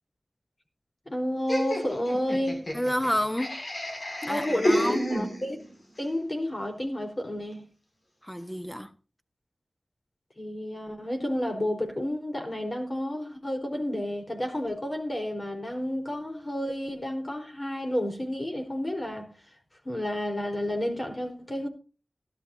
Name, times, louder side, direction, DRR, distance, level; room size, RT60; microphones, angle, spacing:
voice 1, 1.1-2.7 4.3-5.6 6.0-7.6 10.4-19.3 19.8-21.7, left 1 dB, 35° left, 4.2 m, -31 dB
Laughter, 1.5-5.7, equal, 60° left, 6.5 m, -30 dB
voice 2, 2.7-3.5 4.2-5.1 8.2-8.9, equal, 10° left, 1.3 m, -29 dB
17.5 x 12.0 x 2.8 m
wide cardioid pair, 65°, 0 cm